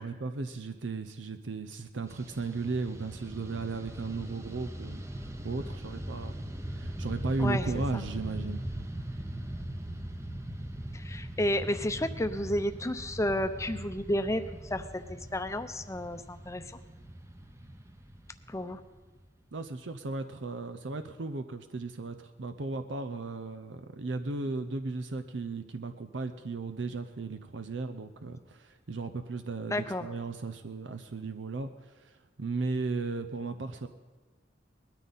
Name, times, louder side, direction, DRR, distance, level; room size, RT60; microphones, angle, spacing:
voice 1, 0.0-6.4 6.7-8.6 19.5-33.9, right 3 dB, 90° right, 8 dB, 0.7 m, -36 dB
Fixed-wing aircraft airplane, 2.1-19.5, right 1 dB, 15° right, 0.8 m, -40 dB
voice 2, 10.9-16.8 18.5-18.8 29.7-30.1, left 1 dB, 15° left, 9 dB, 0.7 m, -32 dB
20.0 x 13.0 x 4.1 m, 1.2 s
head